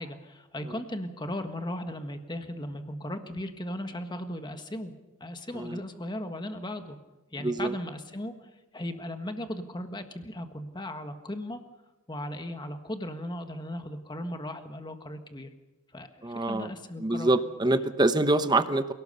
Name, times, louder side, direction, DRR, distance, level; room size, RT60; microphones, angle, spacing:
voice 1, 0.0-4.9 5.2-7.0 7.3-8.3 8.7-11.6 12.1-15.5 15.9-17.3, left 1 dB, 20° left, 7 dB, 1.6 m, -37 dB
voice 2, 7.4-7.7 16.2-16.7 17.0-18.9, right 2 dB, 20° right, 10 dB, 1.0 m, -25 dB
27.5 x 18.0 x 6.8 m, 1.1 s
head